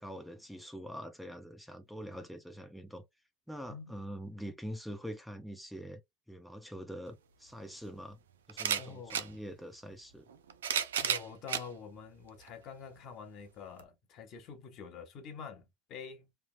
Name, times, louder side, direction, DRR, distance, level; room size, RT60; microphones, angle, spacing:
voice 1, 0.0-3.0 3.5-6.0 6.3-8.2 8.5-10.3, equal, ahead, 0.7 m, -44 dB
voice 2, 3.7-4.0 8.8-9.2 11.0-16.3, left 6 dB, 55° left, 1.1 m, -47 dB
sound 1, 7.1-7.2 8.5-9.3 10.3-11.7 12.4-12.5 13.8-13.9, right 8 dB, 90° right, 0.4 m, -32 dB
3.3 x 2.2 x 2.5 m
hypercardioid pair, 85°, 0 cm